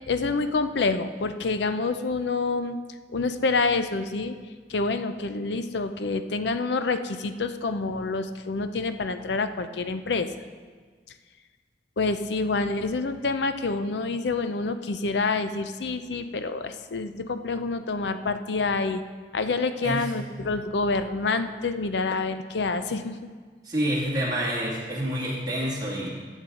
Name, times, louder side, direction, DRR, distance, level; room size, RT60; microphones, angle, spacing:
voice 1, 0.1-2.8 3.1-4.3 4.7-10.3 12.0-19.0 19.3-23.1, left 3 dB, 80° left, 10 dB, 0.6 m, -27 dB
voice 2, 23.6-26.1, equal, 20° right, -7 dB, 2.1 m, -28 dB
14.5 x 7.3 x 3.8 m, 1.5 s
head